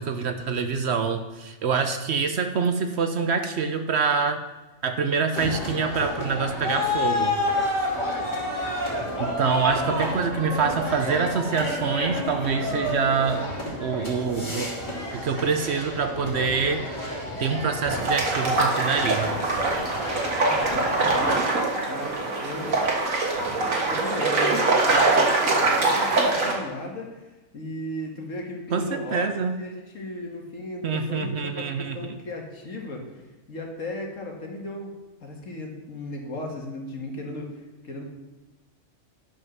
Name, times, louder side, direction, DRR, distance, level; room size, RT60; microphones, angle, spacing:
voice 1, 0.0-4.4 4.8-7.4 8.7-13.5 13.8-14.7 15.1-17.1 17.4-19.3 28.7-29.5 30.8-32.2, right 5 dB, 60° right, 7 dB, 0.9 m, -26 dB
sound 1, 5.3-21.4, left 1 dB, 35° left, 3.1 m, -30 dB
sound 2, 17.9-26.5, right 3 dB, 85° right, 2.0 m, -23 dB
voice 2, 20.4-21.6 21.9-22.8 23.4-34.9 35.2-38.0, left 1 dB, 75° left, 0 dB, 2.0 m, -36 dB
10.5 x 5.4 x 6.1 m, 1.1 s
omnidirectional pair, 1.4 m